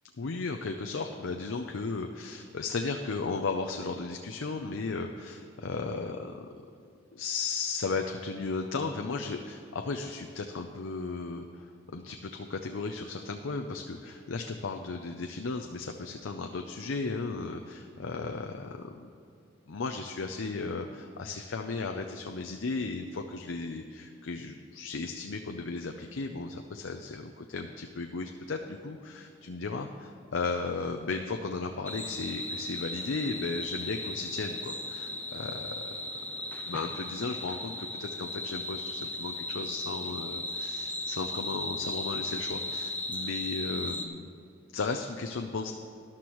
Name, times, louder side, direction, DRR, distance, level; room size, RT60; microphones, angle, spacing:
voice 1, 0.2-6.5 7.1-11.7 11.9-19.1 19.7-36.0 36.7-44.3 44.7-45.7, left 4 dB, 85° left, 4 dB, 0.6 m, -35 dB
sound 1, 31.9-44.1, left 1 dB, 10° left, 0.6 m, -36 dB
13.5 x 11.5 x 3.1 m, 2.5 s
head